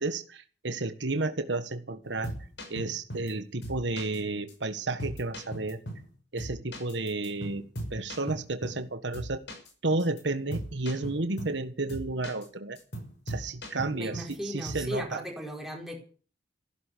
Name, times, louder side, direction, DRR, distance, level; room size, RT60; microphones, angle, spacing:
voice 1, 0.0-2.3 2.7-5.8 6.3-7.6 7.9-9.4 9.8-12.8 13.3-15.2, right 2 dB, 75° right, 9 dB, 1.5 m, -32 dB
sound 1, 2.0-3.3 3.6-4.2 4.5-4.6 5.0-6.1 6.4-8.9 9.1-9.7 10.0-10.2 10.5-11.6 11.9-12.5 12.8-14.4 14.6-14.9, right 1 dB, 70° left, 6.3 m, -39 dB
voice 2, 13.9-16.0, equal, ahead, 1 dB, 4.7 m, -37 dB
15.5 x 13.0 x 6.8 m, 0.41 s
head